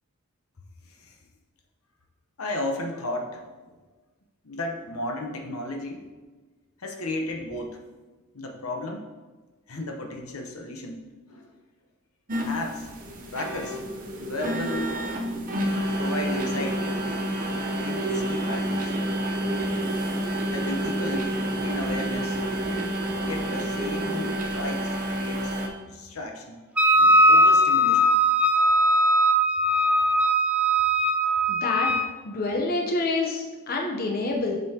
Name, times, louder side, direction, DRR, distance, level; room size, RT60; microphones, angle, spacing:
voice 1, 0.8-1.2 2.4-3.4 4.4-6.1 6.8-7.8 8.3-9.0 9.7-11.0 11.3-11.5 12.5-12.9 13.3-13.8 14.2-15.0 16.0-16.8 17.8-18.9 19.6-19.7 20.5-21.4 21.6-22.4 23.2-25.5 25.9-26.6 27.0-28.1, left 1 dB, 80° left, 2 dB, 0.9 m, -34 dB
sound 1, 12.3-25.7, equal, 40° right, 0.8 m, -29 dB
sound 2, 13.0-24.5, right 1 dB, 10° left, 1.4 m, -35 dB
Wind instrument woodwind instrument, 26.8-32.1, equal, 5° right, 0.4 m, -20 dB
voice 2, 31.5-31.9 32.2-34.6, left 2 dB, 45° left, 0 dB, 0.8 m, -27 dB
7.6 x 5.4 x 2.9 m, 1.3 s
head